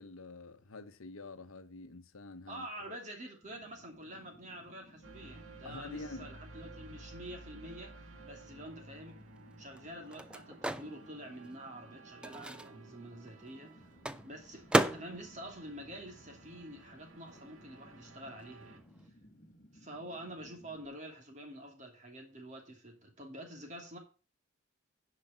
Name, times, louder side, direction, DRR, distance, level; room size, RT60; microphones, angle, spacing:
voice 1, 0.0-3.0 5.6-6.4, left 2 dB, 85° left, 1.0 m, -47 dB
voice 2, 2.5-7.9 8.2-9.2 9.6-13.9 14.2-18.8 19.7-24.0, right 1 dB, 35° right, 2.6 m, -47 dB
Fire, 3.4-20.9, equal, 40° left, 1.4 m, -60 dB
sound 1, 5.0-18.8, right 3 dB, 80° right, 1.7 m, -55 dB
Microwave oven, 8.8-16.9 17.2-19.1, right 1 dB, 5° right, 0.4 m, -37 dB
10.5 x 5.1 x 6.8 m
head